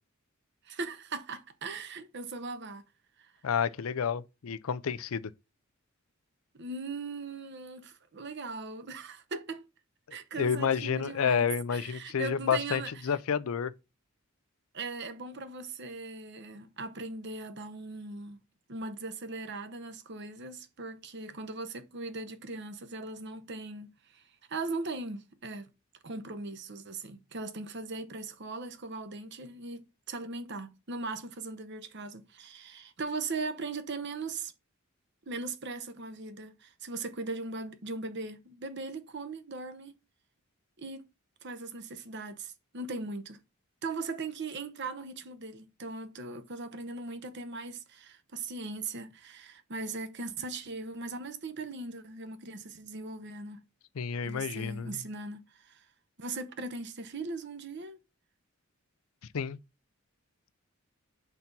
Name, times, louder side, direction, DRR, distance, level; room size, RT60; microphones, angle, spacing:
voice 1, 0.6-2.9 3.2-3.3 6.5-9.6 10.1-13.1 14.7-18.4 18.7-24.2 24.5-25.7 26.0-34.5 35.3-39.9 40.8-41.1 41.4-43.4 43.8-53.6 54.2-55.9 56.2-58.0, right 3 dB, 55° right, 0.9 m, -39 dB
voice 2, 3.4-5.3 10.1-13.7 54.0-55.0 59.3-59.6, left 7 dB, 75° left, 0.5 m, -30 dB
5.9 x 4.0 x 5.9 m
head